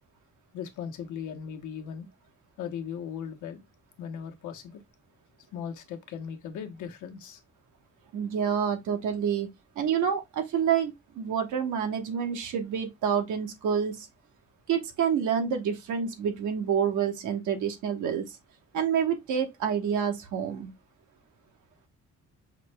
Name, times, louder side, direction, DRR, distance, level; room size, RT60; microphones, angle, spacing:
voice 1, 0.5-2.1 2.6-3.6 4.0-4.8 5.5-7.4, left 8 dB, 80° left, 0.9 m, -38 dB
voice 2, 8.1-9.5 9.8-14.1 14.7-18.2 18.7-20.7, right 7 dB, 80° right, 1.0 m, -28 dB
5.5 x 2.1 x 3.2 m
cardioid pair, 90°, 30 cm